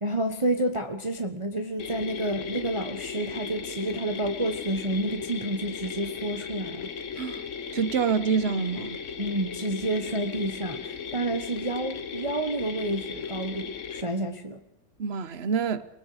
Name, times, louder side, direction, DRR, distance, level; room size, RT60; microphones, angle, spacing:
voice 1, 0.0-6.9 9.2-14.6, right 1 dB, 20° right, 1.0 m, -30 dB
sound 1, 1.8-14.0, left 6 dB, 50° left, 1.3 m, -36 dB
voice 2, 7.7-9.0 15.0-15.9, right 6 dB, 45° right, 1.0 m, -26 dB
28.5 x 20.5 x 5.0 m
omnidirectional pair, 1.9 m